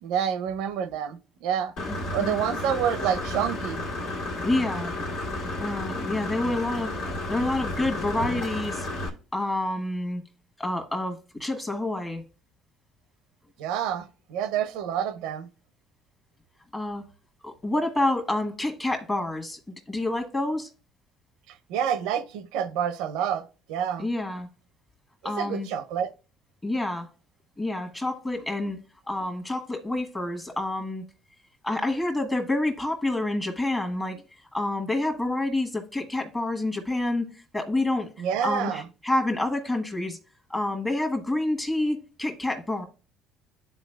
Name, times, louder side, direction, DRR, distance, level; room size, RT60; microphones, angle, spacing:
voice 1, 0.0-1.7 2.1-3.8 13.6-15.5 21.7-24.1 25.2-26.1 38.2-38.8, right 9 dB, 85° right, 0.5 m, -28 dB
Engine / Mechanisms, 1.8-9.1, left 2 dB, 80° left, 1.9 m, -32 dB
voice 2, 1.9-2.4 4.4-5.1 5.6-6.9 7.3-8.9 9.3-10.2 10.6-12.2 16.7-17.0 17.4-19.6 19.9-20.7 24.0-24.5 25.2-25.7 26.6-27.1 27.6-28.8 29.1-31.0 31.6-34.2 34.5-38.1 38.4-40.2 40.5-42.8, left 2 dB, 20° left, 1.2 m, -28 dB
11.0 x 4.0 x 2.2 m
supercardioid pair, 90°, 0 cm